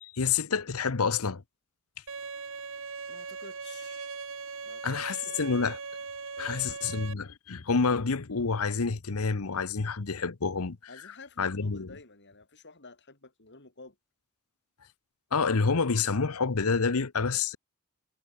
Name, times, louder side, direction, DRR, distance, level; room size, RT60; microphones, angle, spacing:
voice 1, 0.0-1.4 4.8-5.8 6.4-10.8 11.4-11.9 15.3-17.6, left 5 dB, 70° left, 0.9 m, -28 dB
Bowed string instrument, 2.1-7.1, right 4 dB, 65° right, 2.9 m, -39 dB
voice 2, 3.1-4.2 4.6-5.0 6.4-6.8 10.9-14.0, left 3 dB, 50° left, 4.6 m, -50 dB
head